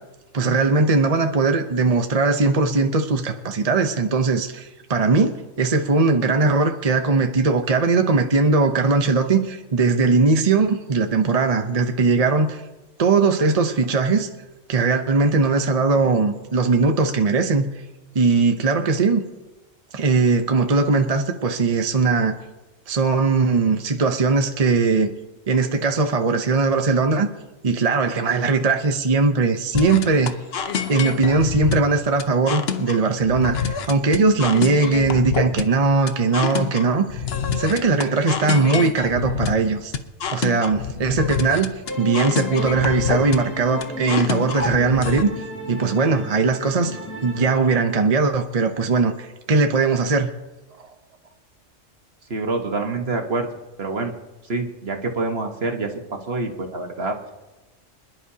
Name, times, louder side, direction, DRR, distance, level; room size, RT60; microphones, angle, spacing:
voice 1, 0.3-12.6 13.0-14.3 14.7-17.7 18.1-19.2 19.9-22.3 22.9-25.1 25.5-27.3 27.6-30.3 30.9-37.2 37.6-39.9 40.3-45.3 45.7-50.3, right 4 dB, 35° right, 5 dB, 0.8 m, -20 dB
sound 1, 29.7-45.2, left 6 dB, 55° left, 1.0 m, -27 dB
sound 2, 41.8-47.6, left 1 dB, 15° left, 2.2 m, -34 dB
voice 2, 52.3-53.5 53.8-54.1 54.5-57.3, right 3 dB, 50° right, 3 dB, 1.7 m, -26 dB
26.0 x 11.0 x 2.8 m, 1.1 s
omnidirectional pair, 1.3 m